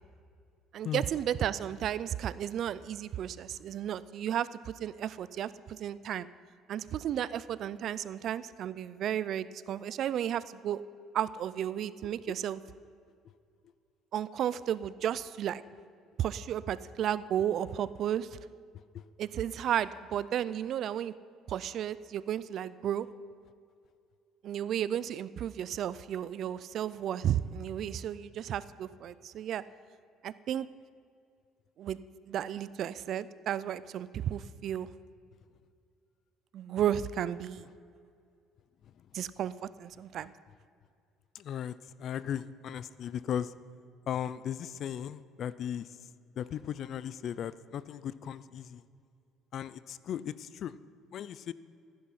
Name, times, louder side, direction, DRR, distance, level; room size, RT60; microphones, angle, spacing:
voice 1, 0.7-6.3 6.7-10.8 11.1-12.6 14.1-15.6 16.2-18.3 19.2-21.1 21.5-23.1 24.4-29.6 30.2-30.7 31.8-32.0 32.3-34.9 36.5-37.6 39.1-39.5 39.8-40.3, right 10 dB, 50° right, 17 dB, 0.4 m, -33 dB
voice 2, 41.3-43.5 44.1-46.0 46.4-48.8 49.5-50.7 51.1-51.5, left 9 dB, 50° left, 17 dB, 0.4 m, -37 dB
14.0 x 10.0 x 5.6 m, 2.3 s
cardioid pair, 135°, 0 cm